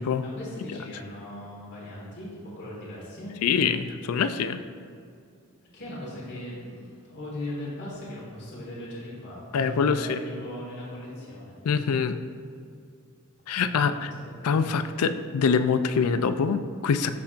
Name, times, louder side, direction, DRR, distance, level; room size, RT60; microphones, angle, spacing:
voice 1, 0.2-3.3 5.7-11.6 13.7-14.7, left 1 dB, 50° left, -7 dB, 1.6 m, -39 dB
voice 2, 3.4-4.6 9.5-10.2 11.6-12.2 13.5-14.1 14.4-17.1, left 6 dB, 75° left, 10 dB, 0.4 m, -24 dB
12.5 x 4.4 x 2.5 m, 2.3 s
head